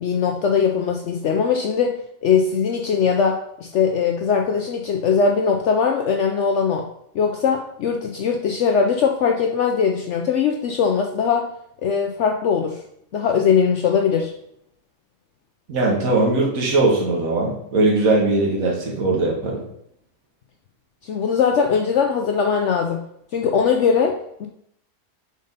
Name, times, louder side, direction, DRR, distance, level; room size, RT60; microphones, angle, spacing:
voice 1, 0.0-6.9 7.1-11.5 11.8-12.8 13.1-14.3 21.0-23.1 23.3-24.5, left 6 dB, 65° left, 3 dB, 0.8 m, -20 dB
voice 2, 15.7-19.6, right 2 dB, 70° right, -3 dB, 1.7 m, -20 dB
5.2 x 4.0 x 5.3 m, 0.72 s
omnidirectional pair, 1.5 m